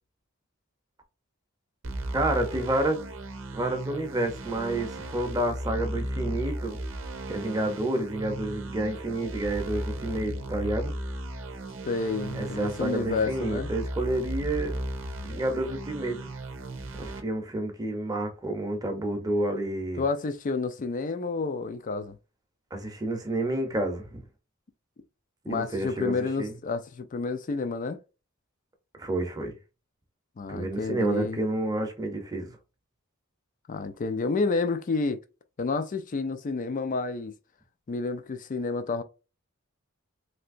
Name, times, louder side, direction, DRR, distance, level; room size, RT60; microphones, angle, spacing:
sound 1, 1.8-17.2, right 1 dB, 65° right, 0.6 m, -35 dB
voice 1, 2.1-3.0 3.5-6.8 7.3-10.9 12.3-14.7 15.2-16.3 17.0-20.0 22.7-24.2 25.4-26.5 29.0-29.5 30.5-32.5, right 1 dB, 20° right, 0.7 m, -29 dB
voice 2, 11.8-13.7 20.0-22.2 25.5-28.0 30.4-31.4 33.7-35.2 35.6-37.3 37.9-39.0, left 4 dB, 40° left, 0.4 m, -30 dB
3.3 x 2.8 x 2.5 m
head